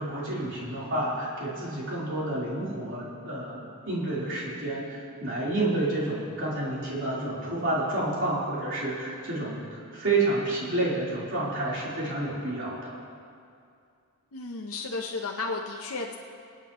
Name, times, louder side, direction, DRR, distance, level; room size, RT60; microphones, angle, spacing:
voice 1, 0.0-12.9, right 2 dB, 55° right, -7 dB, 3.7 m, -29 dB
voice 2, 14.3-16.1, left 3 dB, 65° left, 1 dB, 0.8 m, -33 dB
26.0 x 9.0 x 3.0 m, 2.4 s
head